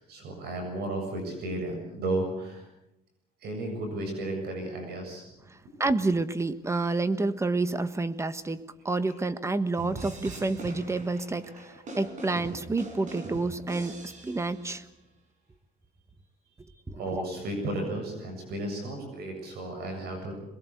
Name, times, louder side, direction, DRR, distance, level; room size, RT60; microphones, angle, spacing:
voice 1, 0.0-2.6 3.4-5.2 16.9-20.3, right 1 dB, 70° right, 4 dB, 7.5 m, -33 dB
voice 2, 5.5-14.9 16.9-17.2, right 3 dB, 15° right, 13 dB, 1.3 m, -29 dB
sound 1, 9.8-14.8, right 2 dB, 45° right, 5.9 m, -42 dB
22.5 x 21.5 x 8.2 m, 0.87 s
cardioid pair, 110°, 17 cm